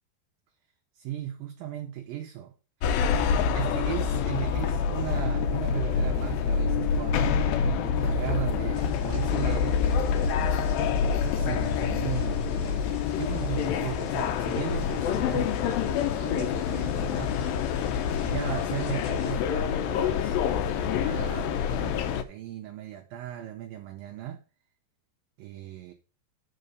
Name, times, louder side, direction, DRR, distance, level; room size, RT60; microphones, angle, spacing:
voice 1, 1.0-2.5 3.5-9.9 11.0-17.4 18.2-24.4 25.4-25.9, right 11 dB, 80° right, 2.1 m, -37 dB
sound 1, 2.8-22.2, left 6 dB, 80° left, 2.0 m, -26 dB
sound 2, 8.7-19.3, left 4 dB, 60° left, 1.9 m, -48 dB
6.8 x 4.9 x 6.6 m
omnidirectional pair, 4.9 m